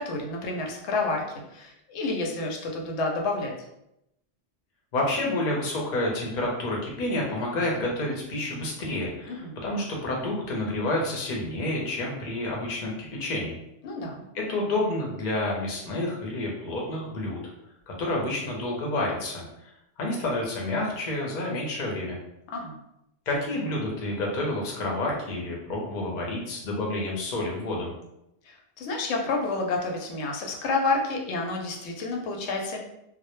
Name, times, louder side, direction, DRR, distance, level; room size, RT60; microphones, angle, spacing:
voice 1, 0.0-3.5 9.3-9.5 13.8-14.2 22.5-22.8 28.4-32.8, left 3 dB, 80° left, 1 dB, 0.8 m, -29 dB
voice 2, 4.9-13.6 14.3-17.4 17.9-22.2 23.3-27.9, left 1 dB, 50° left, -1 dB, 0.7 m, -29 dB
2.1 x 2.1 x 2.9 m, 0.83 s
omnidirectional pair, 1.1 m